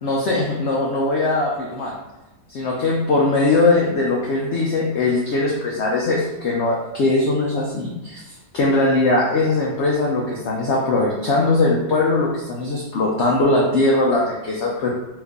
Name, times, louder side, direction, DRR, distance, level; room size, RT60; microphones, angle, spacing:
voice 1, 0.0-1.9 2.5-14.9, left 2 dB, 70° left, -3 dB, 0.6 m, -20 dB
2.9 x 2.5 x 3.5 m, 1.0 s
omnidirectional pair, 1.7 m